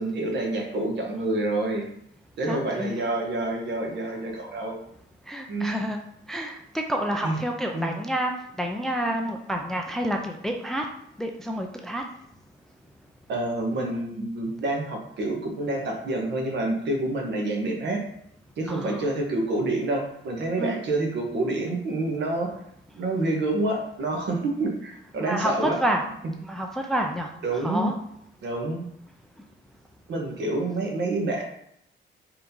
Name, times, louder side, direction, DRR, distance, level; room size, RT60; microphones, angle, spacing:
voice 1, 0.0-1.9 2.4-4.8 5.5-5.9 7.2-7.4 7.7-7.9 13.3-18.0 18.6-22.5 22.9-25.8 27.4-27.9 28.4-28.8 30.1-31.4, right 2 dB, 60° right, 1 dB, 1.5 m, -28 dB
voice 2, 2.5-3.1 5.3-6.0 6.3-10.9 11.2-12.0 18.7-19.0 20.6-20.8 25.2-26.1 26.4-27.3 27.6-27.9, right 1 dB, ahead, 2 dB, 0.4 m, -29 dB
4.8 x 3.7 x 5.3 m, 0.76 s
cardioid pair, 165°, 21 cm